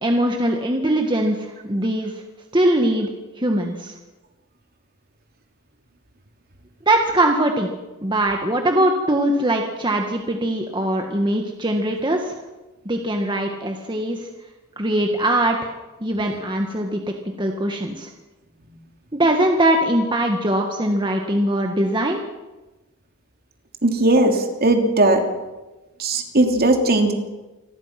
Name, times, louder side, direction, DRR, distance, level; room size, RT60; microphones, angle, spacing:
voice 1, 0.0-2.2 2.5-3.1 3.4-3.9 6.9-7.7 8.0-12.4 12.9-14.3 14.8-15.7 16.0-17.0 17.4-18.1 19.1-22.2, right 1 dB, 20° right, 3 dB, 1.8 m, -21 dB
voice 2, 23.8-25.2 26.0-27.1, right 2 dB, 45° right, 4 dB, 3.0 m, -18 dB
27.5 x 21.0 x 6.0 m, 1.1 s
head